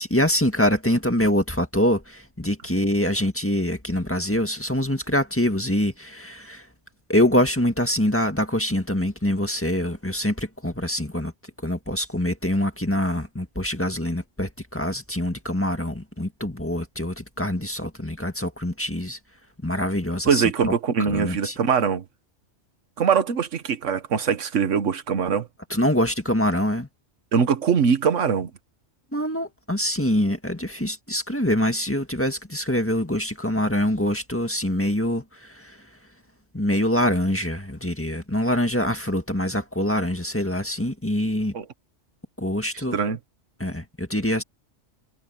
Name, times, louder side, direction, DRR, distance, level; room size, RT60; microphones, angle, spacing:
voice 1, 0.0-6.7 7.1-11.3 11.6-19.2 19.6-20.7 21.0-21.6 25.7-26.9 29.1-35.9 36.5-41.6 42.4-43.0 43.6-44.4, left 1 dB, 10° left, 1.8 m, -24 dB
voice 2, 20.3-22.0 23.0-25.5 27.3-28.5 41.5-41.6 42.9-43.2, right 6 dB, 80° right, 1.5 m, -22 dB
omnidirectional pair, 1.2 m